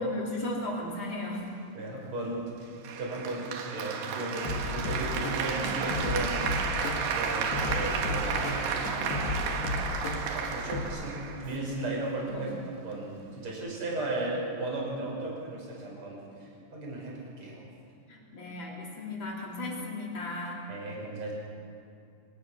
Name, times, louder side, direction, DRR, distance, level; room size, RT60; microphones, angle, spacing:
voice 1, 0.0-1.5 12.3-12.5 18.1-20.7, left 2 dB, 30° left, -2 dB, 3.9 m, -35 dB
voice 2, 1.7-2.6 2.8-8.6 8.9-9.3 10.3-11.1 11.4-12.5 12.8-17.6 20.7-21.3, right 2 dB, 30° right, -3 dB, 6.3 m, -36 dB
Applause, 2.8-11.9, right 6 dB, 75° right, 3.6 m, -32 dB
sound 1, 4.5-10.9, left 3 dB, 70° left, 4.1 m, -34 dB
25.0 x 19.0 x 6.5 m, 2.5 s
omnidirectional pair, 5.0 m